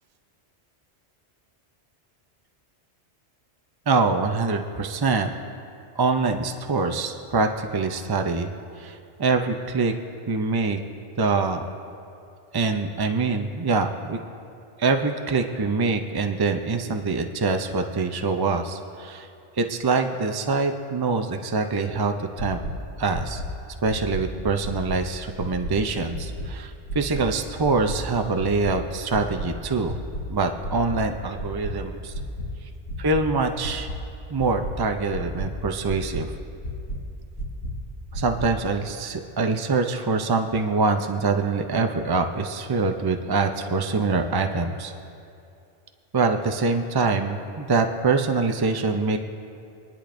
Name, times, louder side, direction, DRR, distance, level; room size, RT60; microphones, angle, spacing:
voice 1, 3.9-5.3 5.9-9.9 10.3-10.8 11.2-11.6 12.5-14.2 14.8-19.3 19.5-22.6 23.0-23.4 23.8-30.0 30.3-32.1 32.6-32.7 33.0-33.9 34.3-36.3 38.1-44.9 46.1-49.2, right 4 dB, 40° right, 5 dB, 0.3 m, -24 dB
sound 1, 22.4-22.7 23.1-23.4 23.9-24.2 24.6-25.0 25.4-25.7 26.1-26.5 26.9-27.2 27.6-28.0 28.4-28.7 29.1-29.5 29.9-30.2 30.6-31.0 31.4-31.7 32.1-32.4 32.9-33.2 33.6-34.0 34.4-34.7 35.1-35.5 35.9-36.2 36.6-37.0 37.4-37.7 38.1-38.5, right 1 dB, 90° left, 2.1 m, -31 dB
26.5 x 10.0 x 2.6 m, 2.6 s
omnidirectional pair, 1.2 m